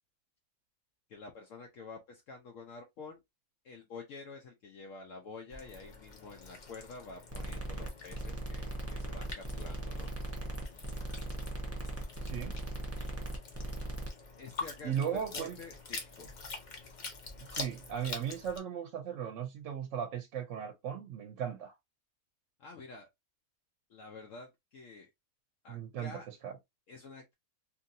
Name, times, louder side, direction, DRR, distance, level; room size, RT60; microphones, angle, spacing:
voice 1, 1.1-3.2 3.6-10.1 14.4-16.3 22.6-23.1 23.9-25.1 25.6-26.3 26.9-27.3, left 4 dB, 70° left, 1.0 m, -49 dB
sound 1, 5.5-18.6, left 4 dB, 45° left, 0.7 m, -46 dB
sound 2, 7.3-14.1, right 1 dB, 20° right, 0.5 m, -39 dB
voice 2, 12.2-12.5 13.0-13.1 14.8-15.6 17.5-21.7 25.7-26.5, right 8 dB, 70° right, 0.9 m, -37 dB
2.8 x 2.6 x 2.5 m
omnidirectional pair, 1.4 m